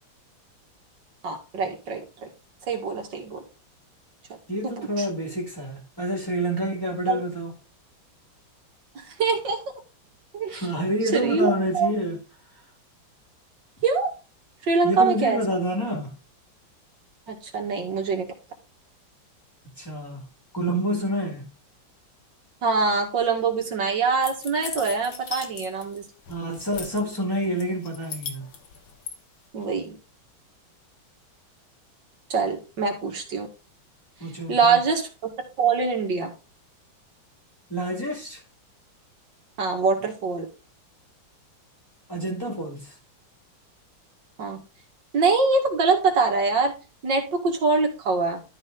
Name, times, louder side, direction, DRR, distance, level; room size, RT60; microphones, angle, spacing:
voice 1, 1.2-2.3 2.7-3.4 4.6-5.1 7.1-7.2 9.0-9.6 10.3-10.7 11.1-11.9 13.8-14.1 14.7-15.4 17.3-18.3 22.6-26.0 29.5-30.0 32.3-33.5 34.5-35.1 35.6-36.3 39.6-40.5 44.4-44.6 45.1-46.7 47.0-48.4, right 4 dB, 65° right, 2.6 m, -24 dB
voice 2, 4.5-7.5 10.5-12.2 14.8-16.2 19.8-20.3 20.5-21.5 26.3-28.5 34.2-34.8 37.7-38.4 40.0-40.1 42.1-43.0, equal, 10° left, 1.9 m, -28 dB
sound 1, 24.2-26.0 26.3-27.2 27.6-29.1, left 6 dB, 75° left, 2.1 m, -37 dB
12.5 x 4.4 x 3.9 m
omnidirectional pair, 2.2 m